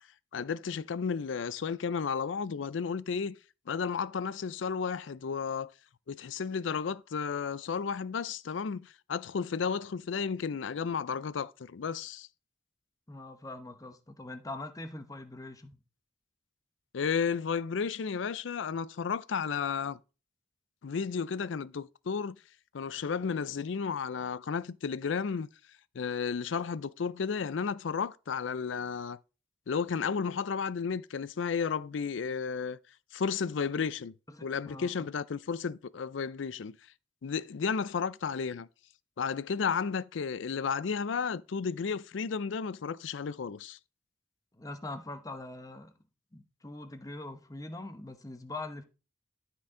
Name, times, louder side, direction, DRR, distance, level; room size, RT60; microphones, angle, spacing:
voice 1, 0.3-3.4 3.7-5.7 6.1-12.3 16.9-20.0 20.8-22.4 22.7-25.5 25.9-29.2 29.7-32.8 33.1-34.1 34.4-36.8 37.2-38.7 39.2-43.8, left 6 dB, 85° left, 0.5 m, -33 dB
voice 2, 13.1-15.8 34.3-35.1 44.5-45.9 46.3-48.8, left 2 dB, 20° left, 0.9 m, -43 dB
13.0 x 4.5 x 3.7 m
head